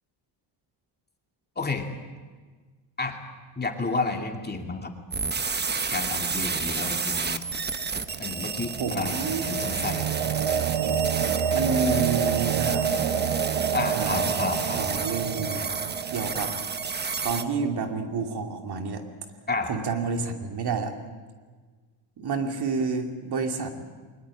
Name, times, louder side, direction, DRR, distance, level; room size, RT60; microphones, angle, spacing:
voice 1, 1.6-1.9 3.0-3.2 3.6-4.9 5.9-7.4 8.2-10.1 13.7-14.9 19.5-19.7, left 3 dB, 20° left, 3 dB, 2.5 m, -31 dB
sound 1, 5.1-17.4, right 5 dB, 20° right, 1.1 m, -31 dB
sound 2, 7.7-17.9, right 9 dB, 80° right, 1.3 m, -29 dB
voice 2, 8.8-9.4 11.5-13.0 13.9-14.4 14.8-15.7 16.1-16.5 17.2-19.0 19.7-20.9 22.2-23.7, right 4 dB, 55° right, 4 dB, 2.7 m, -29 dB
22.5 x 20.5 x 8.7 m, 1.4 s
cardioid pair, 110°, 47 cm